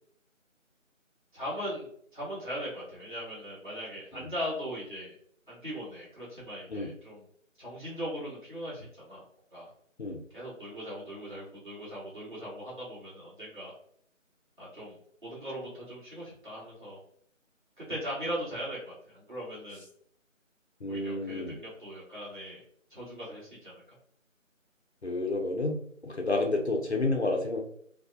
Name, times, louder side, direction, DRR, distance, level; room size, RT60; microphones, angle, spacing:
voice 1, 1.3-5.1 5.5-7.2 7.6-9.2 9.5-9.7 10.3-13.7 14.6-14.9 15.2-17.0 17.9-19.8 20.9-22.6 22.9-23.7, equal, 40° right, -9 dB, 1.4 m, -39 dB
voice 2, 20.8-21.5 25.0-25.8 26.0-27.6, left 2 dB, 60° left, 1 dB, 0.5 m, -30 dB
2.7 x 2.1 x 2.4 m, 0.64 s
figure-of-eight pair, 175°, 40 cm